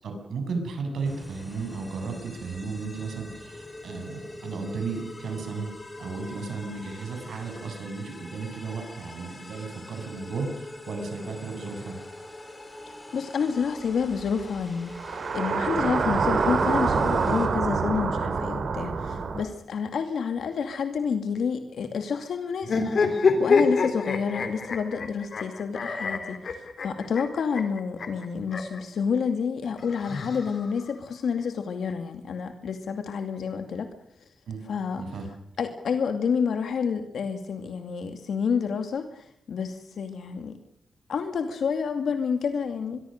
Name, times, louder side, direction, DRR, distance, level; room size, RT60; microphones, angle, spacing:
voice 1, 0.0-5.7 6.0-12.0 34.5-34.6 35.0-35.3, right 4 dB, 90° right, 5 dB, 7.6 m, -34 dB
sound 1, 1.0-17.5, left 2 dB, 20° left, 6.3 m, -43 dB
voice 2, 12.9-33.9 34.7-35.0 35.6-40.6 41.1-43.0, left 6 dB, 80° left, 7 dB, 2.4 m, -29 dB
sound 2, 14.9-19.4, right 5 dB, 65° right, 3.8 m, -26 dB
sound 3, 22.6-28.8 29.8-30.9, left 4 dB, 55° left, 3.8 m, -26 dB
24.5 x 23.0 x 6.6 m, 0.70 s
wide cardioid pair, 120°, 0 cm